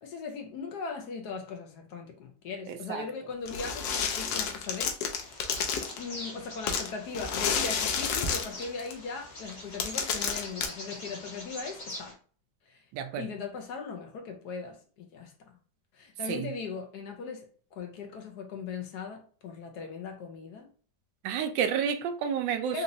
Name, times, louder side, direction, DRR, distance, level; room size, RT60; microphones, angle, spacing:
voice 1, 0.0-4.9 6.0-12.2 12.7-12.8 13.2-15.3 15.9-20.7 22.5-22.8, left 4 dB, 65° left, 1.2 m, -39 dB
sound 1, 3.5-6.0 6.7-8.9 9.5-9.6 9.8-10.7, left 6 dB, 85° left, 1.4 m, -30 dB
Bird vocalization bird call bird song, 5.2-12.1, left 1 dB, 40° left, 1.3 m, -45 dB
voice 2, 12.9-13.3 16.3-16.5 21.2-22.8, right 7 dB, 80° right, 1.3 m, -30 dB
4.0 x 2.9 x 2.6 m
omnidirectional pair, 2.0 m